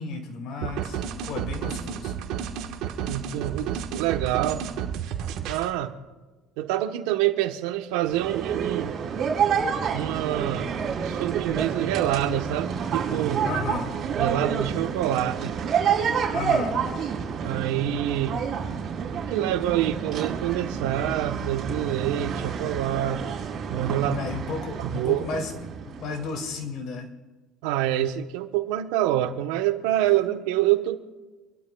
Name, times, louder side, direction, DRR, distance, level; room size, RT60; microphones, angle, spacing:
voice 1, 0.0-2.1 13.4-13.9 16.3-16.8 24.0-25.5 25.9-27.1, left 4 dB, 60° left, 3 dB, 2.3 m, -33 dB
sound 1, 0.6-5.7, right 8 dB, 65° right, 1.3 m, -32 dB
voice 2, 3.1-4.7 5.5-5.9 6.6-8.9 9.9-10.7 11.0-13.4 14.2-15.6 17.4-18.4 19.3-23.2 23.7-24.2 24.8-25.2 27.6-31.0, right 13 dB, 80° right, 8 dB, 1.0 m, -26 dB
sound 2, 8.0-26.5, right 7 dB, 40° right, 4.4 m, -29 dB
27.5 x 12.5 x 2.3 m, 1.2 s
cardioid pair, 120°, 0 cm